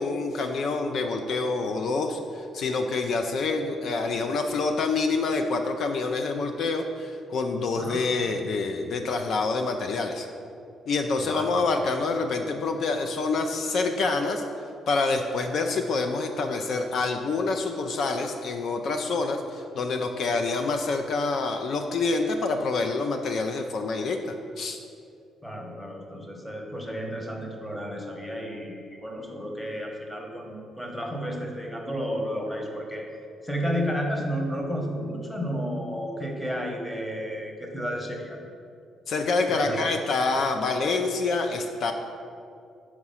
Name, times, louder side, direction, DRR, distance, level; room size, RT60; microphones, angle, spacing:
voice 1, 0.0-10.3 10.9-14.4 14.9-24.8 39.1-41.9, left 3 dB, 60° left, 5 dB, 0.4 m, -27 dB
voice 2, 11.2-11.5 20.2-20.4 25.4-33.1 33.4-38.4 39.5-39.8, equal, 5° left, 2 dB, 1.1 m, -32 dB
5.8 x 4.8 x 5.6 m, 2.4 s
cardioid pair, 90°, 0 cm